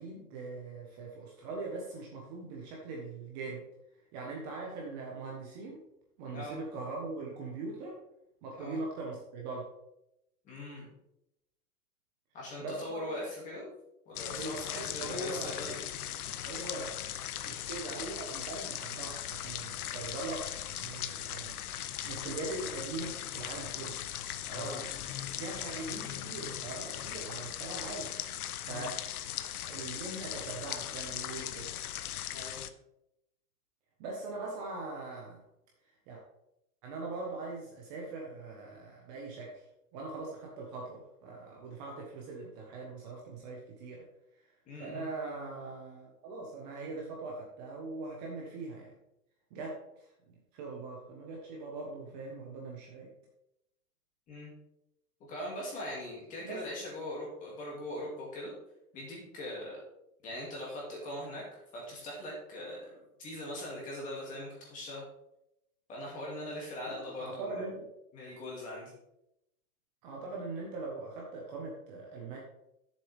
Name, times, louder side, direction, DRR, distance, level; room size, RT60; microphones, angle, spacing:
voice 1, 0.0-3.6 4.1-5.8 6.2-8.0 8.4-9.7 12.6-13.1 14.3-15.7 16.4-17.0 17.4-21.6 22.0-24.0 24.5-24.9 25.4-28.1 28.6-28.9 29.6-31.7 34.0-35.4 36.1-36.2 36.8-39.6 39.9-44.1 44.8-48.9 49.5-50.1 50.5-53.1 56.4-56.7 66.8-67.9 70.0-72.4, right 3 dB, 25° right, -2 dB, 1.3 m, -41 dB
voice 2, 10.4-10.9 12.3-13.7 14.1-15.8 24.5-24.8 28.6-28.9 32.3-32.6 44.7-45.0 54.3-54.5 55.3-58.5 58.9-59.8 60.2-61.4 61.7-65.0 65.9-67.6 68.1-68.9, left 1 dB, 15° left, -3 dB, 2.5 m, -41 dB
sound 1, 14.2-32.7, left 11 dB, 70° left, 0.8 m, -39 dB
11.0 x 7.4 x 3.5 m, 0.83 s
supercardioid pair, 170°, 45 cm